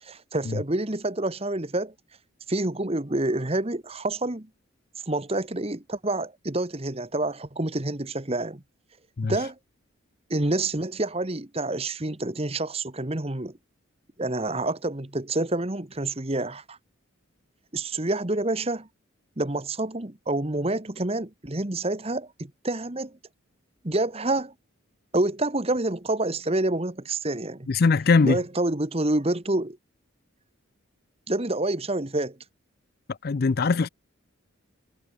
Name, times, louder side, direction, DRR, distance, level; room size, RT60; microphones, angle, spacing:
voice 1, 0.0-1.9 2.5-4.5 5.1-8.6 9.3-9.5 10.3-13.5 14.2-16.8 17.7-18.9 19.4-23.1 23.8-24.5 25.1-27.7 28.2-29.8 31.3-32.4, right 2 dB, 30° right, 1.3 m, -28 dB
voice 2, 27.7-28.4 33.2-33.9, left 4 dB, 45° left, 0.4 m, -21 dB
head